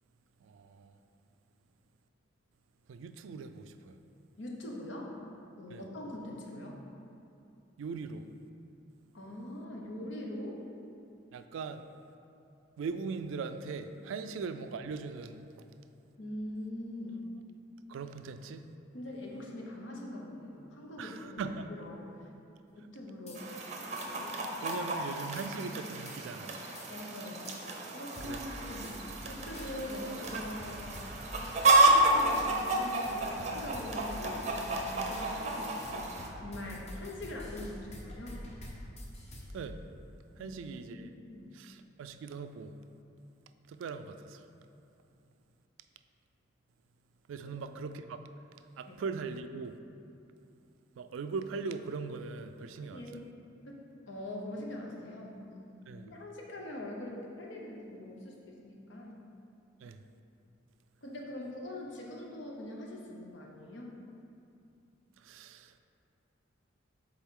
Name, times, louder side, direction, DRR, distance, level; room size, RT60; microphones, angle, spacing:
voice 1, 0.4-0.9 2.9-4.0 5.7-5.8 7.8-8.3 11.3-11.8 12.8-15.7 17.9-18.7 21.0-21.7 24.6-26.6 28.2-28.4 39.5-39.8 40.4-41.1 41.5-42.7 43.7-44.4 47.3-48.2 48.8-49.8 51.0-53.2 55.9-56.1 59.8-60.0 65.2-65.8, right 4 dB, 80° right, 9 dB, 0.3 m, -40 dB
voice 2, 4.4-5.1 5.6-6.8 9.1-10.6 14.2-14.3 16.2-17.2 18.9-22.0 22.7-23.5 26.9-27.5 27.9-30.9 31.8-36.1 36.4-38.5 40.4-40.6 40.9-41.5 48.9-49.0 52.8-53.3 53.6-59.2 61.0-64.0, left 1 dB, 65° left, -1 dB, 0.9 m, -43 dB
sound 1, 23.3-23.4 24.0-24.1 24.7-24.8 25.4-25.5 26.1-26.2 26.7-26.9 27.4-27.6 28.1-39.7, equal, 35° left, 0.8 m, -47 dB
Chicken rooster, 23.3-36.3, right 2 dB, 35° right, 0.6 m, -31 dB
7.1 x 3.9 x 3.7 m, 2.6 s
head